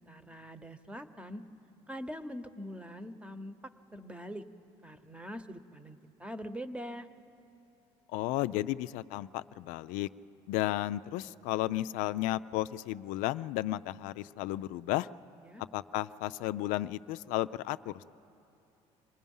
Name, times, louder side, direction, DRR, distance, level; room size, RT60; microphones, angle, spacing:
voice 1, 0.0-1.4 1.9-3.6 3.9-4.4 4.8-7.1 15.4-15.6, equal, 10° right, 11 dB, 0.9 m, -43 dB
voice 2, 8.1-10.1 10.5-15.1 15.7-18.0, left 15 dB, 80° left, 14 dB, 0.4 m, -33 dB
26.5 x 20.5 x 5.5 m, 2.8 s
cardioid pair, 110°, 13 cm